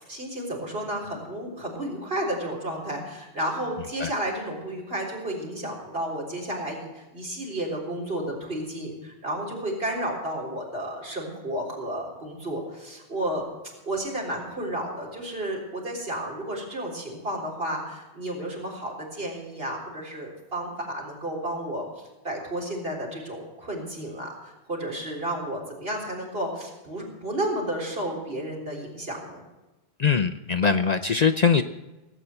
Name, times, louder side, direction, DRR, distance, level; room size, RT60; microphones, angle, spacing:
voice 1, 0.1-13.5 13.9-21.9 22.2-29.4, right 1 dB, 60° right, -1 dB, 4.0 m, -32 dB
voice 2, 30.0-31.6, left 6 dB, 50° left, 10 dB, 0.6 m, -22 dB
17.5 x 8.4 x 7.9 m, 1.1 s
omnidirectional pair, 1.1 m